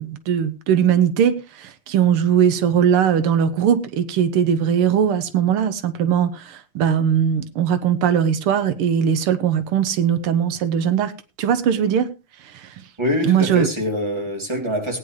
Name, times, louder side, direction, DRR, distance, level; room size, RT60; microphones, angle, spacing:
voice 1, 0.0-11.1 11.4-12.1 13.2-13.7, right 8 dB, 85° right, 1.8 m, -19 dB
voice 2, 13.0-15.0, left 1 dB, 10° right, 2.9 m, -24 dB
18.5 x 9.6 x 3.2 m
omnidirectional pair, 2.4 m